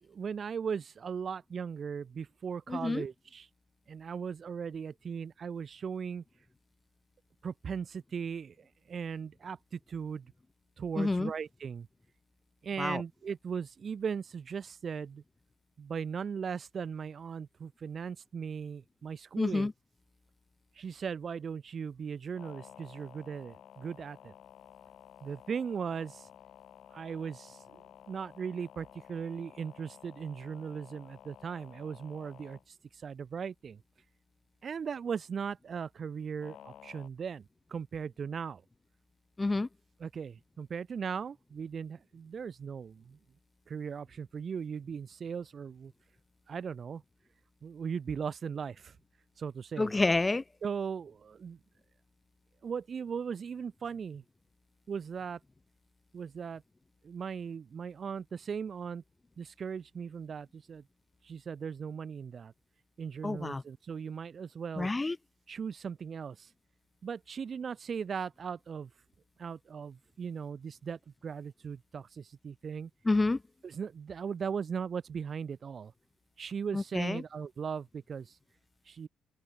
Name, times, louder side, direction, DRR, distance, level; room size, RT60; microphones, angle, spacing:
voice 1, 0.0-3.5 3.9-6.2 7.4-10.3 10.8-11.9 12.6-15.2 15.8-19.7 20.8-24.3 25.2-26.3 26.9-33.8 34.6-38.6 40.0-43.2 43.7-45.9 46.5-47.0 47.6-49.0 49.4-49.9 50.6-51.6 52.6-54.2 54.9-55.4 56.1-56.6 57.0-59.0 59.4-60.8 61.2-62.5 63.0-64.9 65.5-66.5 67.0-68.9 69.4-72.9 73.6-75.9 76.4-78.4 78.9-79.1, right 6 dB, 45° right, 2.5 m, -38 dB
voice 2, 2.7-3.0 11.0-11.3 12.8-13.0 19.4-19.7 39.4-39.7 49.8-50.4 63.2-63.6 64.8-65.2 73.1-73.4 76.7-77.2, left 2 dB, 20° left, 0.5 m, -28 dB
sound 1, 22.3-32.6 36.4-37.1, left 10 dB, 70° left, 5.3 m, -54 dB
cardioid pair, 90°, 0 cm